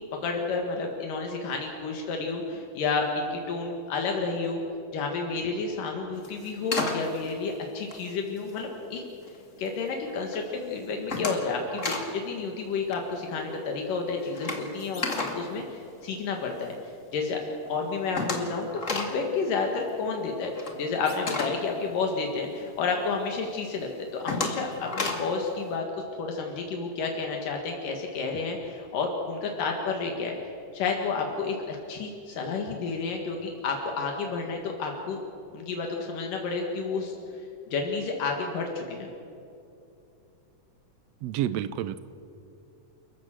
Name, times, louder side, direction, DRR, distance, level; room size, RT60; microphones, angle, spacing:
voice 1, 0.2-4.6 4.9-9.0 9.6-16.8 17.1-17.4 17.7-30.4 30.7-35.2 35.5-37.2 37.7-39.1, left 4 dB, 80° left, 1 dB, 3.4 m, -30 dB
sound 1, 6.1-8.7 9.1-9.7 10.0-10.4 10.7-12.2 12.4-12.6 12.8-16.6 17.0-17.1 17.4-17.5 17.7-22.7 23.1-23.2 23.7-25.4, left 3 dB, 25° left, 2.1 m, -33 dB
voice 2, 41.2-42.0, right 11 dB, 85° right, 14 dB, 1.5 m, -29 dB
29.0 x 14.5 x 7.6 m, 2.7 s
omnidirectional pair, 3.8 m